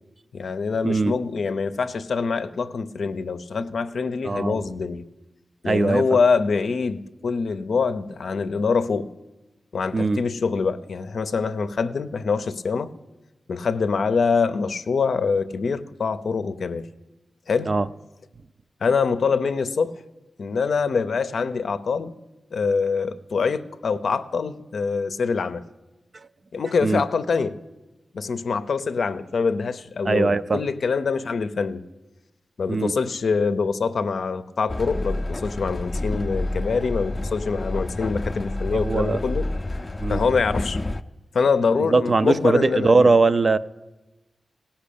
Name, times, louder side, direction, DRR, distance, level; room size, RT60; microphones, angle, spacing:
voice 1, 0.3-5.0 5.6-9.1 9.7-12.9 13.5-16.9 17.5-17.7 18.8-20.0 20.4-22.1 22.5-25.6 26.5-27.6 28.1-31.8 32.6-39.5 40.1-40.8 41.3-43.1, left 5 dB, 75° left, 0.5 m, -24 dB
voice 2, 4.2-4.6 5.6-6.0 9.9-10.2 17.7-17.9 26.8-27.0 30.0-30.6 32.7-32.9 38.7-39.2 40.0-40.2 41.9-43.6, right 3 dB, 45° right, 0.4 m, -20 dB
Train, 34.7-41.0, left 2 dB, 30° left, 0.4 m, -29 dB
17.0 x 5.7 x 8.5 m
wide cardioid pair, 80°, 0 cm